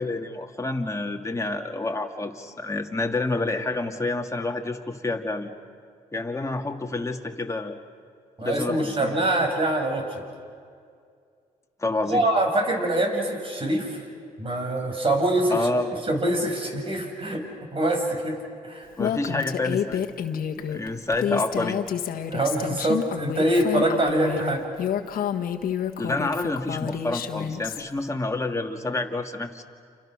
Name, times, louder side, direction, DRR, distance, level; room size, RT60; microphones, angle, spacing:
voice 1, 0.0-5.5 6.1-7.8 8.4-9.3 11.8-12.2 15.5-15.9 19.0-20.0 20.7-21.8 26.0-29.6, left 2 dB, 20° left, 3 dB, 2.5 m, -28 dB
voice 2, 8.4-10.2 12.1-14.0 14.4-15.7 16.1-17.4 17.7-18.4 18.6-18.9 22.3-24.6, right 1 dB, 35° right, 3 dB, 6.7 m, -24 dB
Female speech woman speaking, 19.0-27.8, left 9 dB, 70° left, 1.6 m, -29 dB
30.0 x 28.0 x 6.5 m, 2.2 s
supercardioid pair, 65°, 15 cm